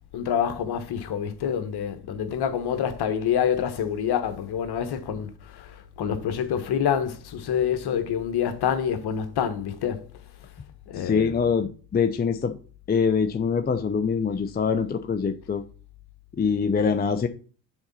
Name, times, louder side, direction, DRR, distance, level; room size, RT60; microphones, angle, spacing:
voice 1, 0.1-10.1 10.9-11.3, left 8 dB, 50° left, 1.3 m, -27 dB
voice 2, 10.9-12.5 12.9-15.6 16.3-17.3, left 6 dB, 20° left, 0.6 m, -24 dB
7.1 x 4.0 x 5.5 m
hypercardioid pair, 60°, 49 cm